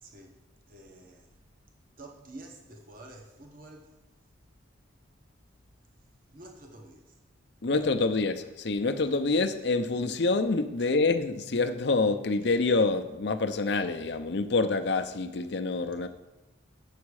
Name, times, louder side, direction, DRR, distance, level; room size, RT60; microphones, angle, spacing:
voice 1, 0.0-0.4 0.7-1.3 2.0-3.9 6.3-7.2 10.8-10.9, right 2 dB, 45° right, 1 dB, 1.0 m, -49 dB
voice 2, 7.6-16.1, left 3 dB, 55° left, 8 dB, 0.6 m, -27 dB
8.3 x 7.2 x 4.8 m, 1.0 s
head